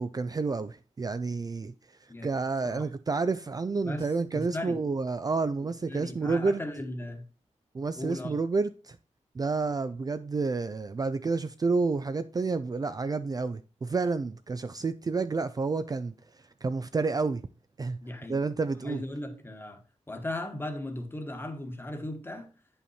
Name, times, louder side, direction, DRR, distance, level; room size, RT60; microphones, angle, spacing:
voice 1, 0.0-1.7 2.2-6.6 7.7-9.0 9.4-16.1 16.6-17.5 17.8-18.0 18.3-19.0, right 4 dB, 35° right, 0.4 m, -29 dB
voice 2, 3.8-4.8 5.9-7.2 8.0-8.4 18.0-18.4 18.8-19.8 20.1-22.5, left 1 dB, 20° left, 1.3 m, -37 dB
9.0 x 5.6 x 4.2 m
wide cardioid pair, 130°, 12 cm